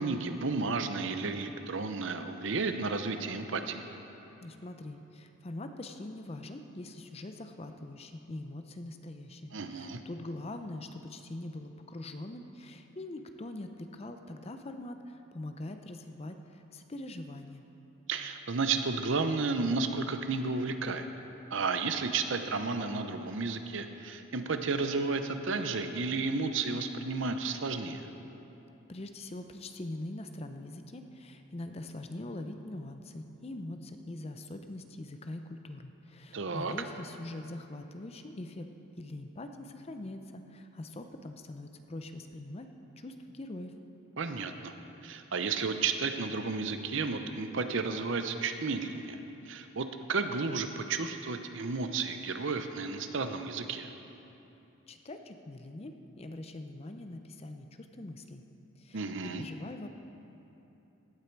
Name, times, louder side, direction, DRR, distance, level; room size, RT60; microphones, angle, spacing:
voice 1, 0.0-3.8 9.5-10.0 18.1-21.1 21.5-28.1 36.3-36.7 44.2-44.7 45.0-49.2 49.5-53.9 58.9-59.4, right 4 dB, 60° right, 8 dB, 0.7 m, -32 dB
voice 2, 4.4-17.7 28.9-38.7 39.0-42.7 43.0-43.7 54.9-58.4 58.8-59.9, left 1 dB, 30° left, 7 dB, 0.5 m, -43 dB
16.0 x 8.4 x 4.6 m, 2.9 s
head